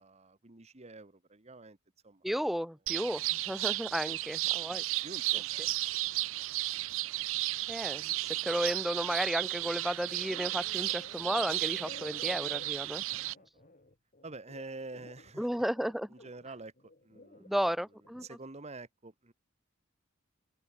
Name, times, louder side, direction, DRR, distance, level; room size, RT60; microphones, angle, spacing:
voice 1, 0.0-1.8 2.0-2.3 3.9-4.2 5.0-6.5 13.4-13.8 14.2-15.6 16.1-19.3, right 3 dB, 35° right, 1.5 m, -48 dB
voice 2, 2.2-4.8 7.7-8.1 8.4-13.0 15.4-16.1 17.5-18.2, equal, ahead, 0.4 m, -33 dB
sound 1, 2.9-13.3, right 19 dB, 70° right, 0.4 m, -34 dB
sound 2, 9.4-9.7 10.0-15.3 15.7-17.5 17.9-18.3, left 2 dB, 40° left, 2.4 m, -53 dB
open air
head